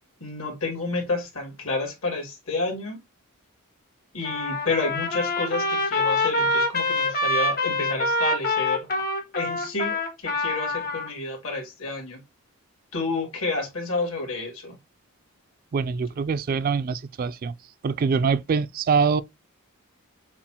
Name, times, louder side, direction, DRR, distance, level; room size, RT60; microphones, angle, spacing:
voice 1, 0.2-3.0 4.1-8.9 9.3-12.2 12.9-14.7, left 3 dB, 70° left, 2.5 m, -30 dB
Trumpet, 4.2-11.1, left 2 dB, 45° left, 1.2 m, -25 dB
voice 2, 15.7-17.5 17.8-19.2, right 5 dB, 40° right, 0.3 m, -24 dB
7.1 x 2.4 x 2.8 m
head